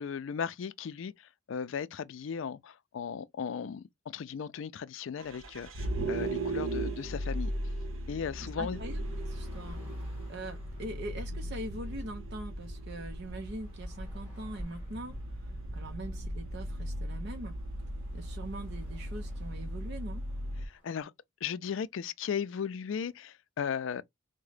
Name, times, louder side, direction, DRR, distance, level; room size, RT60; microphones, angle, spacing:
voice 1, 0.0-7.5 8.1-8.8 20.6-21.1 21.4-24.0, left 7 dB, 65° left, 0.4 m, -36 dB
Vehicle, 5.2-20.7, right 1 dB, 80° right, 0.8 m, -38 dB
voice 2, 8.4-17.6 18.1-20.2, right 1 dB, 55° right, 0.6 m, -43 dB
Bus / Traffic noise roadway noise, 8.5-21.0, equal, 10° right, 1.6 m, -47 dB
3.6 x 2.1 x 3.2 m
head